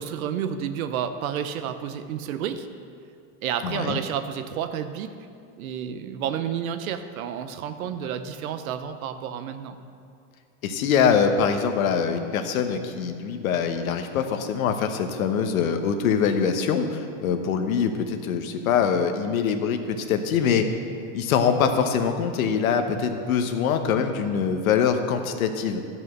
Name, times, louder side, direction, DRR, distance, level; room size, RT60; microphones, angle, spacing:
voice 1, 0.0-2.7 3.4-5.1 5.6-9.8, right 8 dB, 90° right, 10 dB, 0.9 m, -30 dB
voice 2, 3.6-4.0 10.6-20.6 21.1-25.8, left 7 dB, 90° left, 7 dB, 1.1 m, -23 dB
12.5 x 5.6 x 6.1 m, 2.5 s
supercardioid pair, 145°, 41 cm